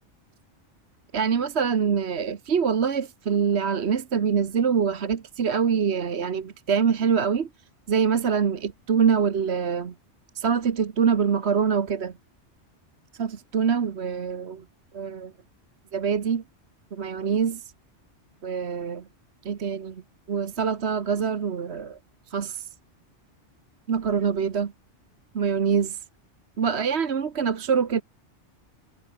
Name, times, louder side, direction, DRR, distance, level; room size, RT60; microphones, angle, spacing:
voice 1, 1.1-7.5 7.9-9.9 10.3-12.1 13.2-14.6 14.9-15.3 15.9-16.4 16.9-17.7 18.4-19.0 19.4-20.0 20.3-22.0 22.3-22.7 23.9-24.7 25.4-26.0 26.6-28.0, right 6 dB, 65° right, 1.4 m, -24 dB
omnidirectional pair, 1.2 m